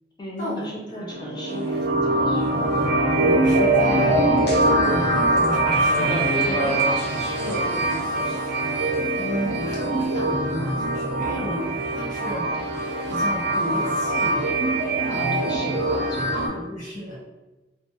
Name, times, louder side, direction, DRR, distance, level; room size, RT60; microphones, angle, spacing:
voice 1, 0.2-2.7 6.4-6.9 7.3-8.4 11.2-11.5 15.1-16.4, equal, 25° left, -3 dB, 0.6 m, -36 dB
voice 2, 0.9-1.3 3.1-6.1 9.1-11.6 11.9-14.5 15.1-15.5 16.1-17.3, equal, 45° left, -8 dB, 1.3 m, -33 dB
sound 1, 1.1-16.5, right 2 dB, 65° right, 0.4 m, -23 dB
sound 2, 4.5-4.9 5.4-8.1 8.9-9.8, equal, 60° left, 0.7 m, -30 dB
2.4 x 2.2 x 2.6 m, 1.1 s
head